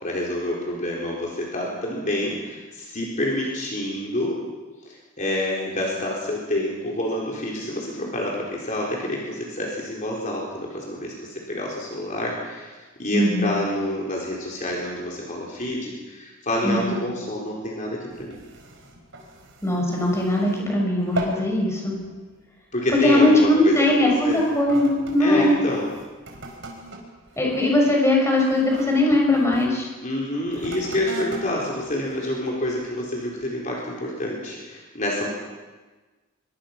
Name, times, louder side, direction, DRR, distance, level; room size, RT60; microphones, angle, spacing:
voice 1, 0.0-4.4 4.8-12.7 13.0-18.4 22.7-24.4 25.2-25.9 30.0-35.3, left 1 dB, 40° left, -3 dB, 4.2 m, -28 dB
voice 2, 13.1-13.5 16.6-17.0 19.6-22.0 23.0-25.6 27.4-29.9, left 1 dB, 15° left, -1 dB, 6.0 m, -20 dB
sound 1, 18.1-20.7 21.0-21.5 21.9-22.2 22.9-23.1 23.9-29.7 30.5-32.8 33.4-33.5, right 1 dB, 65° right, 5.0 m, -38 dB
25.0 x 23.0 x 6.0 m, 1.3 s
head